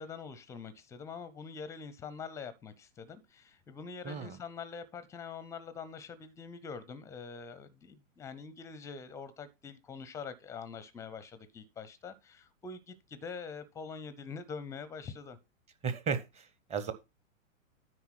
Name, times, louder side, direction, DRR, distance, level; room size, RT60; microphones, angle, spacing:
voice 1, 0.0-15.4, left 5 dB, 5° left, 0.5 m, -44 dB
voice 2, 4.0-4.4 15.8-16.9, right 6 dB, 15° right, 0.8 m, -35 dB
9.5 x 4.7 x 5.7 m
figure-of-eight pair, 110°, 41 cm